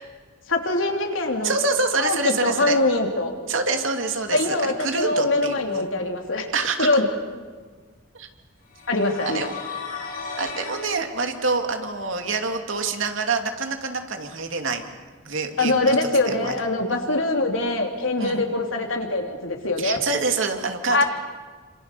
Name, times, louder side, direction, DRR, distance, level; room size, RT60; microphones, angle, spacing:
voice 1, 0.5-1.5 2.0-3.3 4.3-6.5 6.8-7.1 8.9-9.5 15.6-20.0 20.9-21.0, left 2 dB, 75° left, 2 dB, 3.5 m, -23 dB
voice 2, 1.4-2.8 3.5-5.9 6.5-6.9 8.1-8.3 9.2-9.6 10.4-14.8 15.2-16.0 16.3-16.5 18.2-18.4 19.8-21.0, right 4 dB, 75° right, 5 dB, 2.6 m, -26 dB
sound 1, 8.7-10.9, left 5 dB, 45° left, 6.2 m, -35 dB
28.5 x 26.5 x 7.0 m, 1.5 s
head